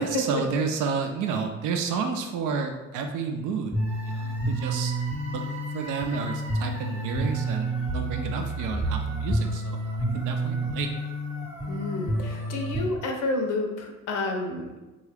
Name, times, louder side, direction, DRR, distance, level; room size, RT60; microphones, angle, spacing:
voice 1, 0.0-4.9 5.3-5.4 5.7-10.9, right 5 dB, 90° right, 4 dB, 0.5 m, -30 dB
sound 1, 3.7-12.8, right 1 dB, 10° right, 0.7 m, -29 dB
voice 2, 11.7-14.7, left 2 dB, 80° left, 3 dB, 0.7 m, -30 dB
3.6 x 2.3 x 3.3 m, 1.1 s
cardioid pair, 90°, 30 cm